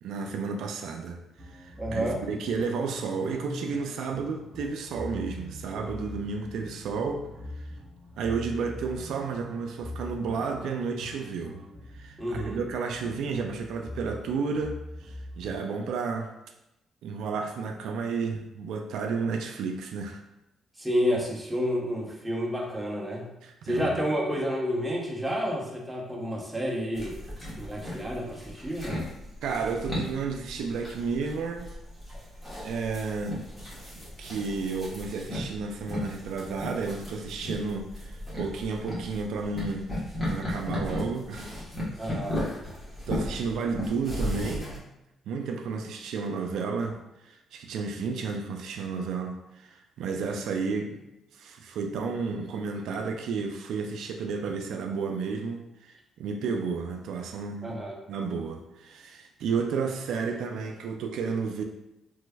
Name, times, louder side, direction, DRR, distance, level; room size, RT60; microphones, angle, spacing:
voice 1, 0.0-7.3 7.6-7.7 8.2-11.6 11.9-16.3 17.0-20.2 23.4-24.0 29.4-31.7 32.6-33.4 34.0-39.9 40.3-41.5 43.1-44.9 45.3-51.0 51.3-57.8 58.1-61.6, right 5 dB, 80° right, 4 dB, 0.3 m, -32 dB
sound 1, 1.4-15.6, left 1 dB, 50° right, 0.9 m, -43 dB
voice 2, 1.8-2.2 12.2-12.6 20.8-23.3 23.6-27.1 27.6-29.0 42.0-42.5 57.6-57.9, equal, 10° right, -1 dB, 0.7 m, -30 dB
sound 2, 26.9-44.8, left 1 dB, 10° left, 1.3 m, -36 dB
3.3 x 3.1 x 2.2 m, 0.90 s
cardioid pair, 90°, 0 cm